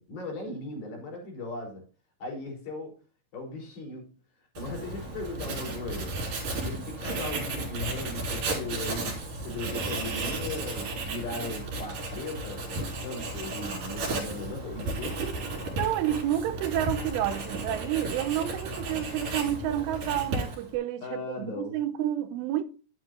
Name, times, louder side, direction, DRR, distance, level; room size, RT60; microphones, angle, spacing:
voice 1, 0.0-1.9 2.2-3.0 3.3-4.1 4.6-6.2 6.6-15.8 21.0-21.8, left 2 dB, 50° left, 5.5 m, -38 dB
Writing, 4.5-20.8, right 2 dB, 45° right, 4.8 m, -34 dB
voice 2, 15.8-22.6, right 12 dB, 85° right, 3.4 m, -30 dB
11.0 x 9.8 x 2.5 m
omnidirectional pair, 5.7 m